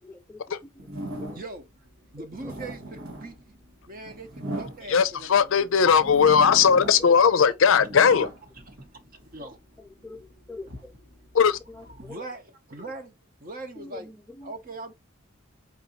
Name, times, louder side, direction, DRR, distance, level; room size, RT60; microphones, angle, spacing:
voice 1, 0.0-0.9 1.2-1.4 2.2-2.3 7.0-7.1 9.4-9.5 10.0-10.9 11.7-12.2 13.8-14.5, left 2 dB, 10° left, 0.4 m, -44 dB
sound 1, 0.8-1.7 2.2-5.4 5.9-7.2 7.5-9.4 10.0-12.1, right 1 dB, 90° right, 1.7 m, -39 dB
voice 2, 1.3-1.9 2.1-3.6 3.9-6.0 7.4-7.5 8.7-8.8 9.3-9.6 12.0-13.1 13.4-14.1 14.4-14.9, right 2 dB, 40° right, 0.9 m, -41 dB
voice 3, 4.9-8.3 11.3-11.6, left 6 dB, 65° left, 0.5 m, -19 dB
4.9 x 2.7 x 2.8 m
head